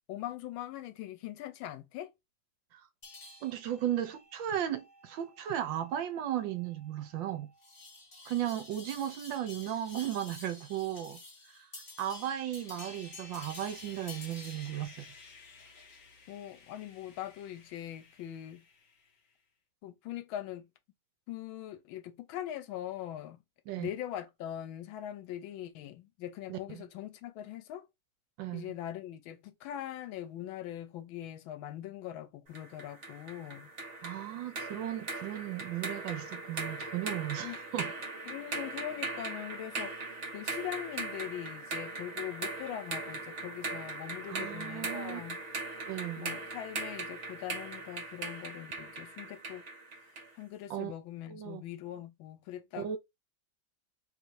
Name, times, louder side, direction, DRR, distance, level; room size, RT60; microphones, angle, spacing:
voice 1, 0.1-2.1 16.3-18.6 19.8-20.7 21.3-23.4 23.7-27.9 28.5-33.7 37.4-37.6 38.3-39.9 40.3-45.4 46.2-49.6 50.3-53.0, left 12 dB, 80° left, 1.4 m, -41 dB
sound 1, 3.0-14.9, left 2 dB, 30° left, 1.2 m, -51 dB
voice 2, 3.4-7.5 8.3-11.2 11.5-11.7 12.0-15.1 23.7-23.9 26.5-26.8 28.4-28.7 34.0-37.9 44.3-45.2 45.9-46.3 50.7-50.9 51.3-51.6 52.8-53.0, right 11 dB, 70° right, 1.3 m, -36 dB
Sawing, 11.9-19.3, left 4 dB, 55° left, 1.2 m, -56 dB
sound 2, 32.6-50.4, right 3 dB, 40° right, 1.3 m, -40 dB
3.3 x 2.6 x 4.5 m
omnidirectional pair, 2.2 m